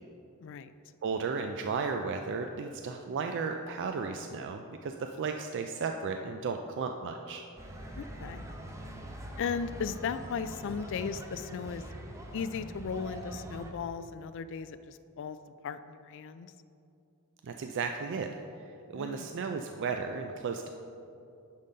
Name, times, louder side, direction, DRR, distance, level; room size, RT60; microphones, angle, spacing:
voice 1, 0.4-0.7 7.9-8.4 9.4-11.9 12.3-15.4 15.6-16.5 18.9-19.3, left 6 dB, 55° left, 12 dB, 0.3 m, -36 dB
voice 2, 1.0-7.4 17.4-18.3 18.9-20.7, right 5 dB, 55° right, 5 dB, 0.3 m, -34 dB
sound 1, 7.6-13.7, right 1 dB, 15° right, 0.6 m, -43 dB
10.5 x 3.8 x 5.3 m, 2.7 s
head